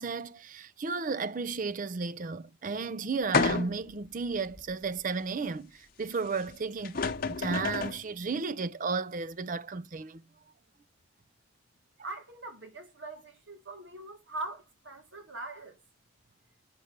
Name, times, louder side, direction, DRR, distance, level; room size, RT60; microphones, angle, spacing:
voice 1, 0.0-7.0 7.3-10.2, right 4 dB, 40° right, 0.5 m, -33 dB
sound 1, 3.3-4.0 4.6-4.7 6.5-6.6 6.8-8.0, left 4 dB, 50° left, 1.0 m, -29 dB
voice 2, 12.0-15.8, right 2 dB, 70° right, 3.2 m, -42 dB
8.9 x 6.5 x 6.6 m
head